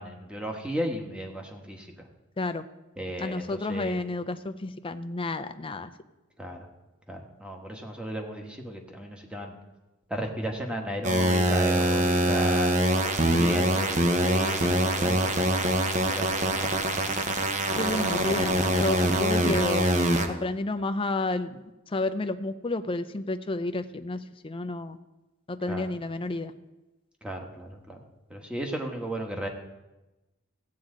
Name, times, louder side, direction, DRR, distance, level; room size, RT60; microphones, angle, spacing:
voice 1, 0.0-1.9 3.0-4.0 6.4-6.7 7.1-9.5 10.1-17.1 25.7-25.8 27.2-28.0 28.3-29.5, right 1 dB, 5° right, 2 dB, 1.3 m, -35 dB
voice 2, 3.2-5.9 17.8-19.9 20.3-21.6 21.9-24.2 24.4-25.0 25.5-26.5, left 2 dB, 25° left, 10 dB, 0.5 m, -30 dB
sound 1, 11.0-20.3, right 1 dB, 35° right, 1.0 m, -24 dB
15.0 x 8.6 x 3.8 m, 1.0 s
head